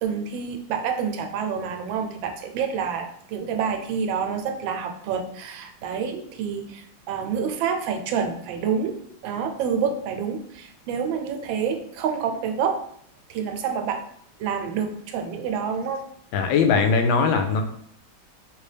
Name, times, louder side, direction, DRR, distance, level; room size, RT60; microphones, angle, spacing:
voice 1, 0.0-12.8 13.3-14.0 14.4-16.0, right 6 dB, 90° right, 5 dB, 1.3 m, -28 dB
voice 2, 16.3-17.6, left 5 dB, 85° left, 6 dB, 1.3 m, -20 dB
3.2 x 2.9 x 3.2 m, 0.65 s
omnidirectional pair, 2.1 m